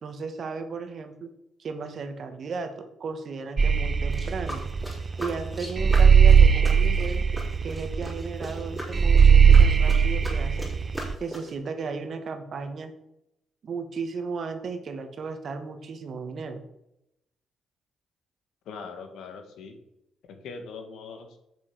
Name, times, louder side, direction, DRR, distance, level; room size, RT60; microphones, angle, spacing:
voice 1, 0.0-1.3 1.6-4.7 5.2-7.3 7.6-10.7 11.2-12.9 13.6-16.6, right 4 dB, 55° right, 8 dB, 1.3 m, -35 dB
sound 1, 3.6-11.1, right 6 dB, 35° right, 0.4 m, -18 dB
sound 2, 4.1-11.6, equal, 10° left, 3.6 m, -40 dB
voice 2, 18.6-19.7 20.3-21.4, left 5 dB, 80° left, 6 dB, 1.7 m, -41 dB
7.2 x 6.5 x 6.0 m, 0.85 s
cardioid pair, 90°, 0 cm